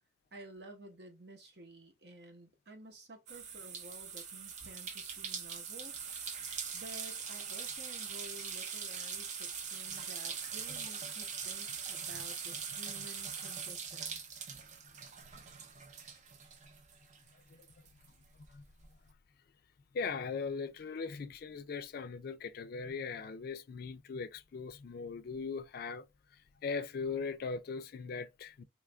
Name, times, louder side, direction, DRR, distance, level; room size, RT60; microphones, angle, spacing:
voice 1, 0.3-5.9 6.7-14.2, right 1 dB, 65° right, 0.9 m, -52 dB
sound 1, 3.3-17.3 17.6-18.8, right 6 dB, 40° right, 0.5 m, -42 dB
voice 2, 19.9-26.1 26.6-28.6, left 5 dB, 55° left, 0.3 m, -39 dB
3.0 x 2.4 x 3.4 m
head